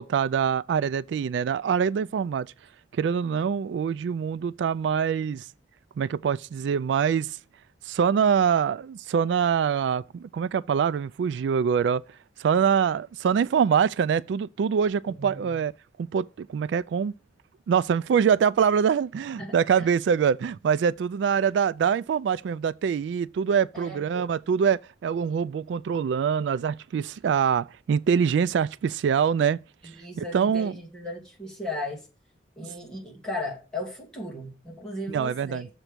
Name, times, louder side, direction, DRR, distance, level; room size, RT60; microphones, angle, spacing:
voice 1, 0.0-2.5 2.9-5.4 6.0-7.4 7.9-12.0 12.4-15.7 16.0-17.1 17.7-29.6 30.2-30.7 35.1-35.7, right 7 dB, 85° right, 0.3 m, -24 dB
voice 2, 15.1-15.6 19.4-19.9 23.7-24.3 29.8-32.0 32.6-35.6, left 2 dB, 5° left, 2.4 m, -36 dB
7.2 x 4.5 x 6.6 m
head